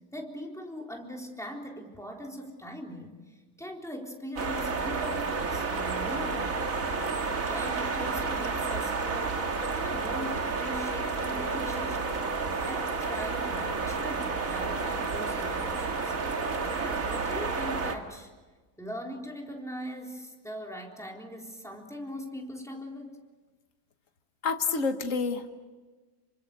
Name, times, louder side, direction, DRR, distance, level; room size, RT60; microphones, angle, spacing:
voice 1, 0.1-6.9 7.5-9.4 9.7-12.2 12.6-16.1 16.7-18.3 18.8-23.2, equal, ahead, 0 dB, 3.7 m, -40 dB
sound 1, 4.4-18.0, right 4 dB, 70° right, 2.1 m, -31 dB
voice 2, 24.4-25.5, left 4 dB, 65° left, 6 dB, 1.7 m, -28 dB
28.5 x 24.5 x 6.7 m, 1.3 s
omnidirectional pair, 1.5 m